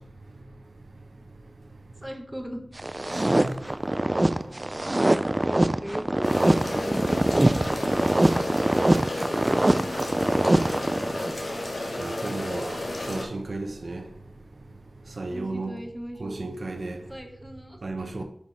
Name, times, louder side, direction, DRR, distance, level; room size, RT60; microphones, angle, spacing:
voice 1, 2.0-2.6 5.1-7.0 9.6-10.1 15.3-16.5 17.1-17.8, equal, ahead, 1.2 m, -38 dB
sound 1, 2.8-11.4, right 1 dB, 30° right, 0.3 m, -23 dB
sound 2, 6.2-13.2, left 1 dB, 70° left, 1.8 m, -32 dB
voice 2, 12.0-12.8 13.1-14.1 15.2-15.8 16.2-17.0 17.8-18.2, right 2 dB, 70° right, 0.8 m, -33 dB
6.0 x 5.3 x 4.1 m
wide cardioid pair, 55°, 0 cm